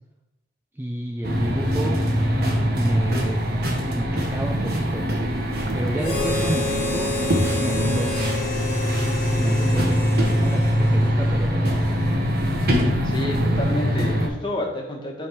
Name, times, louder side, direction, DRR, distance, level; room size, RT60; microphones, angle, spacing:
voice 1, 0.8-2.0 2.8-3.4 3.9-5.1 5.7-7.1 7.6-8.1 9.4-12.0, right 1 dB, 10° right, 1 dB, 0.5 m, -31 dB
sound 1, 1.2-14.3, equal, 55° right, 1.2 m, -22 dB
Harmonica, 6.0-11.5, left 3 dB, 65° left, 1.6 m, -30 dB
voice 2, 13.0-15.3, left 1 dB, 25° left, 0 dB, 1.4 m, -29 dB
9.9 x 3.5 x 4.5 m, 0.91 s
head